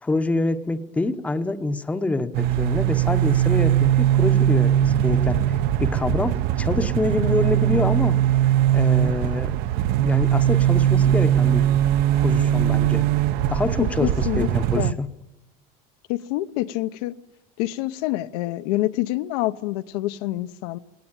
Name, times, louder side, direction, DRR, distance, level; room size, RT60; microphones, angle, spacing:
voice 1, 0.0-5.4 5.8-8.2 8.7-9.6 10.0-11.6 12.1-13.1 13.5-15.1, left 2 dB, 5° left, 0.8 m, -26 dB
sound 1, 2.3-14.9, right 12 dB, 50° right, 0.7 m, -20 dB
voice 2, 13.8-14.5 14.8-15.0 16.1-17.1 17.6-20.8, left 17 dB, 75° left, 0.9 m, -26 dB
19.5 x 18.5 x 8.9 m
cardioid pair, 170°, 20 cm